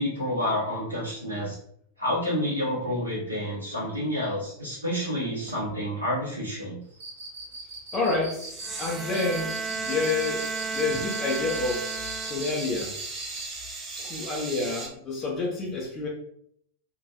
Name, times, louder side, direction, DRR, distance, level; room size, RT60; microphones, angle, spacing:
voice 1, 0.0-1.6 2.0-6.8, equal, 85° left, -8 dB, 1.2 m, -29 dB
Cricket, 6.9-13.5, right 3 dB, 55° right, 1.0 m, -41 dB
voice 2, 7.9-10.4 10.7-11.9 12.3-12.9 14.0-16.1, left 3 dB, 25° left, -2 dB, 0.8 m, -29 dB
sound 1, 8.4-14.9, right 3 dB, 25° right, 0.7 m, -38 dB
Bowed string instrument, 8.6-12.8, right 5 dB, ahead, 0.3 m, -34 dB
3.2 x 2.7 x 2.6 m, 0.67 s
figure-of-eight pair, 90°, 0 cm